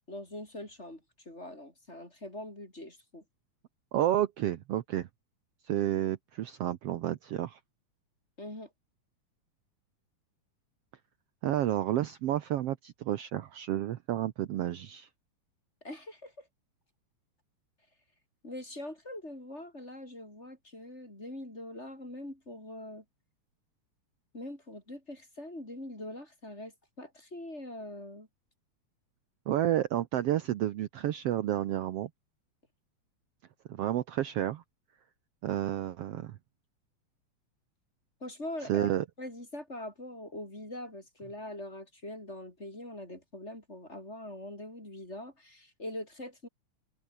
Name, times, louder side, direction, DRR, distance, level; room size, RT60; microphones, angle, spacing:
voice 1, 0.1-1.0 1.3-3.2 8.4-8.7 15.8-16.5 18.4-23.0 24.3-28.3 38.2-38.9 39.2-46.5, left 1 dB, 20° left, 7.3 m, -43 dB
voice 2, 3.9-5.1 5.6-7.6 11.4-15.1 29.5-32.1 33.7-34.6 35.4-36.4 38.7-39.0, right 12 dB, 65° right, 1.8 m, -30 dB
omnidirectional pair, 3.3 m